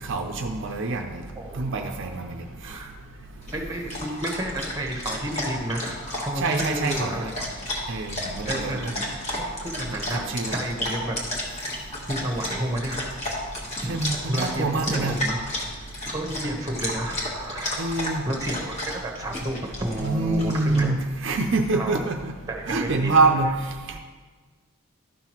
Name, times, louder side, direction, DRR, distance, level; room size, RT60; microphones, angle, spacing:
voice 1, 0.0-1.2 1.6-2.4 6.4-7.3 7.9-9.0 10.1-10.6 13.9-15.2 17.8-18.2 20.0-22.3 22.7-23.5, right 3 dB, 55° right, 4 dB, 0.5 m, -25 dB
Dog, 3.4-20.8, left 1 dB, 30° left, 1.3 m, -32 dB
voice 2, 3.5-7.3 7.7-7.8 8.5-11.3 12.1-13.5 13.8-14.0 14.3-15.3 16.1-17.8 18.2-20.9 21.7-22.0 22.5-23.2, right 1 dB, 15° right, 2 dB, 0.9 m, -31 dB
12.0 x 5.7 x 3.0 m, 1.4 s
head